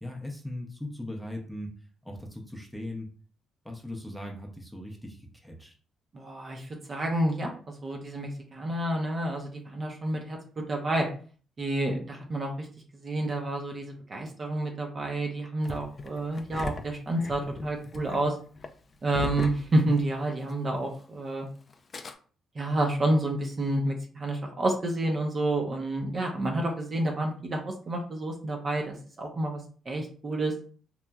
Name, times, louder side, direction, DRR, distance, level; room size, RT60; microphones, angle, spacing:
voice 1, 0.0-1.7 2.0-3.1 3.6-5.7, left 1 dB, ahead, 0 dB, 0.6 m, -39 dB
voice 2, 6.1-7.5 7.8-10.4 10.7-11.1 11.6-12.7 12.9-18.4 19.0-21.5 22.5-29.6 29.9-30.5, right 1 dB, 40° right, 2 dB, 0.6 m, -29 dB
Engine starting, 15.6-20.5 20.8-20.9 21.7-22.1, left 2 dB, 40° left, 0.3 m, -37 dB
3.0 x 2.4 x 2.3 m, 0.42 s
cardioid pair, 90°, 0 cm